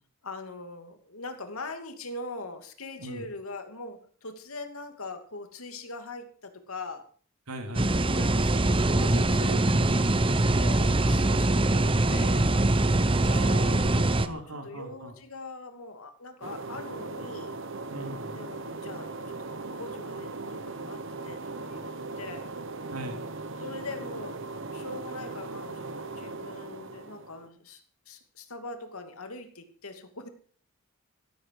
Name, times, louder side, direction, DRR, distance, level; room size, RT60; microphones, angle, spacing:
voice 1, 0.2-7.1 8.1-12.5 13.1-17.5 18.3-21.9 22.2-22.5 23.6-24.4 24.7-30.3, left 3 dB, 75° left, 7 dB, 2.6 m, -42 dB
voice 2, 7.5-7.9 13.1-15.1 17.9-18.4 22.9-23.3, right 1 dB, 85° right, 5 dB, 3.5 m, -39 dB
sound 1, 7.7-14.3, right 2 dB, 25° right, 0.8 m, -23 dB
sound 2, 16.4-27.5, right 3 dB, 55° right, 1.3 m, -38 dB
16.5 x 14.5 x 4.8 m, 0.43 s
head